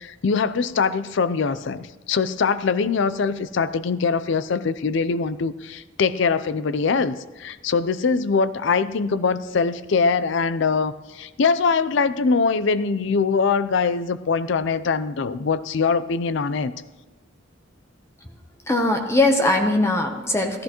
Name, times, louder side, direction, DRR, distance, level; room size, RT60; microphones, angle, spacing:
voice 1, 0.0-16.7, left 5 dB, 65° left, 15 dB, 0.5 m, -22 dB
voice 2, 18.7-20.6, left 2 dB, 15° left, 4 dB, 0.8 m, -20 dB
14.5 x 13.5 x 3.0 m, 1.2 s
head